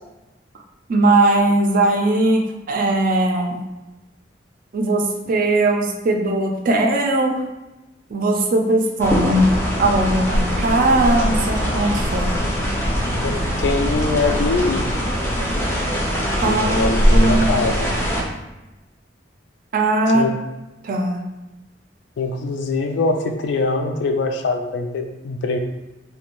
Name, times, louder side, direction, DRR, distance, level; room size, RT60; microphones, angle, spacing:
voice 1, 0.9-3.6 4.7-7.4 8.1-9.5 9.8-12.4 16.4-17.6 19.7-20.3 20.8-21.2, right 2 dB, 50° right, 3 dB, 0.4 m, -19 dB
sound 1, 9.0-18.2, equal, 15° left, 0.4 m, -21 dB
voice 2, 13.2-14.8 16.4-17.9 20.1-20.3 22.2-25.6, left 3 dB, 75° left, 5 dB, 0.3 m, -23 dB
2.5 x 2.2 x 2.9 m, 1.0 s
head